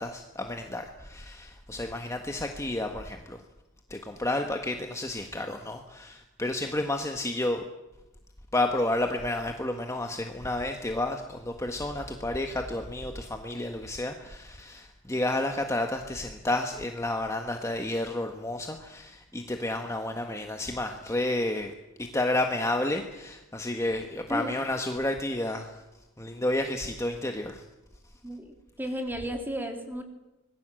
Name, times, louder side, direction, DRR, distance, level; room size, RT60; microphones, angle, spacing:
voice 1, 0.0-3.4 3.9-7.6 8.5-21.7 22.0-25.8 26.2-27.6, left 1 dB, 15° left, 4 dB, 1.4 m, -31 dB
voice 2, 28.2-30.0, equal, 10° right, 4 dB, 3.1 m, -34 dB
26.0 x 20.5 x 7.8 m, 0.97 s
head